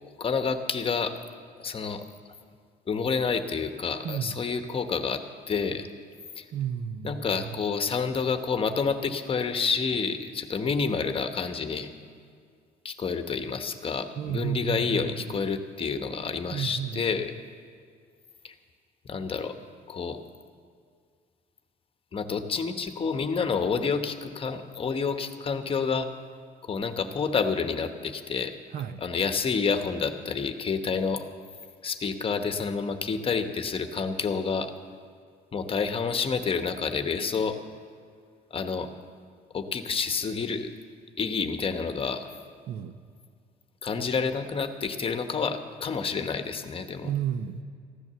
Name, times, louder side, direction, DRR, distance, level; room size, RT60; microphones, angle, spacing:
voice 1, 0.2-1.1 1.6-2.0 2.9-5.9 6.4-6.5 7.0-11.9 12.8-17.3 18.4-18.5 19.0-19.6 19.9-20.2 22.1-26.1 26.7-28.5 29.0-31.2 31.8-34.7 35.5-37.6 38.5-38.9 39.5-40.7 41.2-42.3 43.8-47.1, left 5 dB, 35° left, 8 dB, 1.0 m, -29 dB
voice 2, 4.0-4.4 6.5-7.3 14.2-15.2 16.5-17.0 28.7-29.0 42.7-43.0 47.0-47.6, right 8 dB, 60° right, 12 dB, 0.7 m, -31 dB
15.0 x 10.5 x 6.8 m, 2.1 s
cardioid pair, 110°, 17 cm